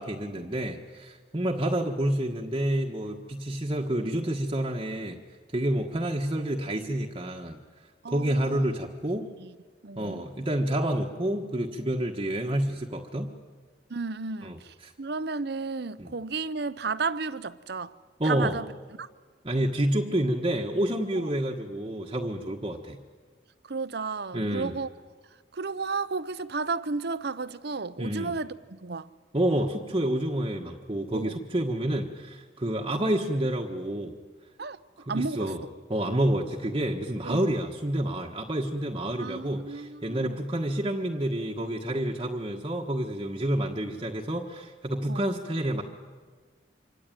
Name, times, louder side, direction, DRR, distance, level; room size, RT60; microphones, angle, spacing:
voice 1, 0.0-5.2 5.5-7.6 8.1-9.3 10.0-13.3 14.4-14.6 14.8-14.9 16.0-16.1 18.2-18.6 19.4-23.0 24.3-24.7 28.0-28.3 29.3-34.1 35.0-35.6 35.9-45.8, right 1 dB, 30° right, 1.4 m, -29 dB
voice 2, 8.0-8.8 9.4-9.5 9.8-10.2 13.9-18.0 18.2-18.7 19.0-19.1 21.2-21.3 23.6-24.9 25.5-29.1 31.1-31.4 34.6-34.8 35.1-35.5 37.2-37.5 39.1-40.4 45.1-45.2, right 4 dB, 65° right, 0.8 m, -33 dB
26.0 x 24.5 x 9.1 m
head